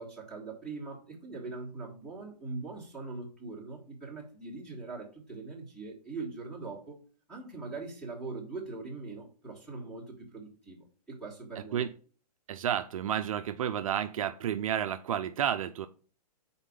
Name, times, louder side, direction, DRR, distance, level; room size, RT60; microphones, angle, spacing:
voice 1, 0.0-7.0 7.3-11.8, right 3 dB, 5° left, 1.6 m, -41 dB
voice 2, 12.5-15.9, right 9 dB, 55° right, 0.5 m, -31 dB
5.6 x 4.2 x 5.1 m
hypercardioid pair, 170°, 21 cm